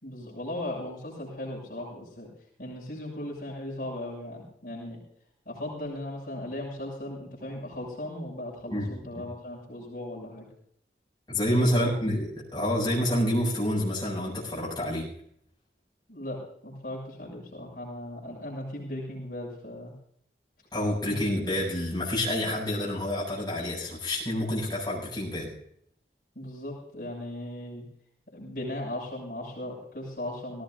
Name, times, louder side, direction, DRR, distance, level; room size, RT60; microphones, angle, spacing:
voice 1, 0.0-2.3 2.6-5.0 5.4-10.4 11.6-11.9 16.1-19.9 21.0-21.2 26.3-27.8 28.3-30.6, left 1 dB, 55° left, -4 dB, 6.8 m, -37 dB
voice 2, 11.3-15.1 20.7-25.5, equal, 25° left, -5 dB, 7.7 m, -28 dB
18.5 x 18.5 x 2.6 m, 0.69 s
head